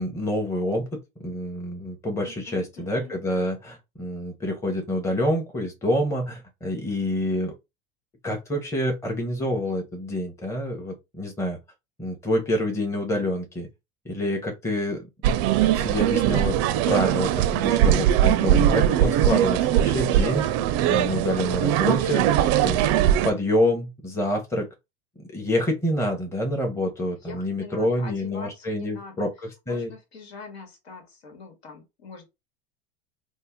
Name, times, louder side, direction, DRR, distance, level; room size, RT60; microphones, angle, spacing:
voice 1, 0.0-7.5 8.2-11.6 12.0-13.7 14.0-15.0 15.7-16.6 16.9-20.4 20.8-22.3 22.6-24.7 25.3-29.9, left 1 dB, 10° left, 0.8 m, -27 dB
voice 2, 2.2-3.1 27.2-29.3 29.7-32.2, left 4 dB, 85° left, 1.2 m, -43 dB
sound 1, 15.2-23.3, right 11 dB, 50° right, 0.4 m, -21 dB
2.6 x 2.1 x 3.4 m
hypercardioid pair, 90°, 31 cm